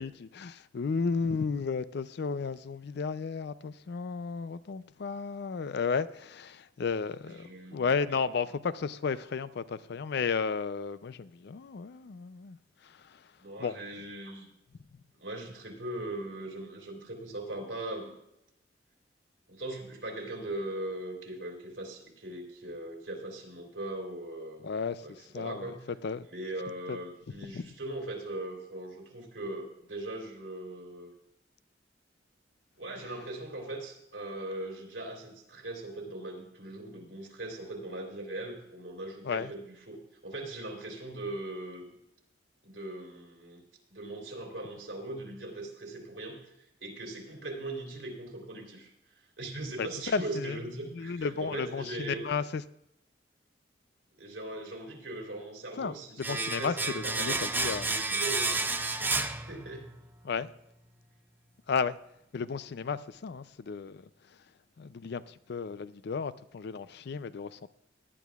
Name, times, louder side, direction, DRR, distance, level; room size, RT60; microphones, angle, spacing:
voice 1, 0.0-12.6 12.8-13.2 13.6-13.7 24.6-25.7 26.0-26.3 26.9-27.0 27.5-27.6 39.2-39.5 49.8-50.6 50.9-52.6 55.8-57.9 60.2-60.5 61.7-62.0 62.3-64.0 64.8-67.7, left 5 dB, 65° left, 0.4 m, -33 dB
voice 2, 7.2-7.9 13.4-14.5 15.1-18.1 19.5-24.7 25.0-25.8 26.3-31.1 32.8-40.0 40.2-42.0 42.6-43.6 43.9-52.2 54.2-57.4 57.9-58.6 59.0-59.9, right 2 dB, 80° right, 3.3 m, -40 dB
Domestic sounds home sounds, 56.2-60.0 60.3-60.4, right 3 dB, 10° right, 0.5 m, -31 dB
18.5 x 11.0 x 2.4 m
head